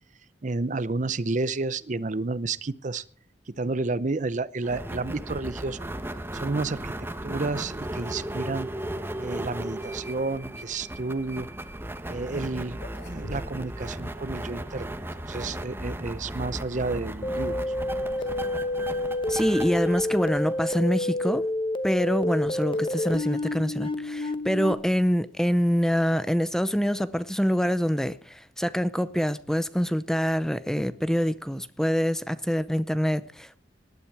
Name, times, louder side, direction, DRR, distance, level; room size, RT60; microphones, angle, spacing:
voice 1, 0.4-3.0 3.5-5.9 6.3-6.9 7.2-8.7 9.1-11.5 12.1-12.8 13.1-17.6, right 3 dB, 45° right, 0.7 m, -31 dB
sound 1, 4.6-21.1, right 1 dB, 15° right, 1.1 m, -36 dB
sound 2, 12.7-13.8 14.1-14.2 15.1-15.8 17.6-17.8 18.2-18.5 18.8-18.9 19.7-19.8 21.5-23.7, equal, 85° left, 3.2 m, -45 dB
sound 3, 17.2-24.7, left 1 dB, 30° left, 1.0 m, -29 dB
voice 2, 19.3-21.5 21.8-33.6, equal, 5° left, 0.6 m, -25 dB
19.0 x 12.0 x 4.8 m
head